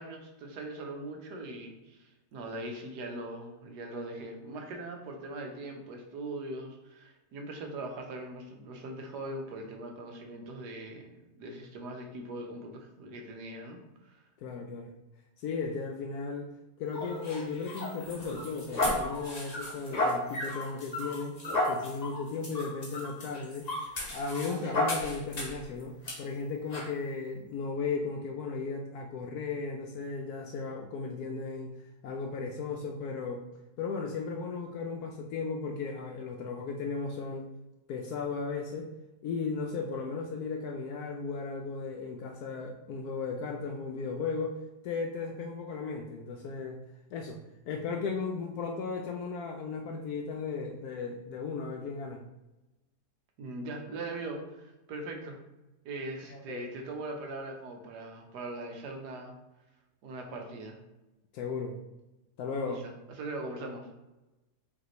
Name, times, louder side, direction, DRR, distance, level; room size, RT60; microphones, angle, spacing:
voice 1, 0.0-14.2 53.4-55.4 55.8-59.3 60.0-60.8 63.2-63.9, right 2 dB, 85° right, 2 dB, 1.4 m, -41 dB
voice 2, 14.4-14.9 15.4-16.5 16.8-21.4 21.7-23.7 24.1-31.7 32.0-33.5 33.8-37.5 37.9-38.9 39.2-44.6 44.8-46.8 47.1-47.4 47.7-52.2 56.2-56.7 61.3-61.8 62.4-62.9, left 4 dB, 75° left, 2 dB, 1.0 m, -36 dB
sound 1, 16.9-25.6 26.0-26.2 26.7-26.9, left 1 dB, 30° left, 0.9 m, -33 dB
5.3 x 3.3 x 3.0 m, 1.0 s
omnidirectional pair, 1.7 m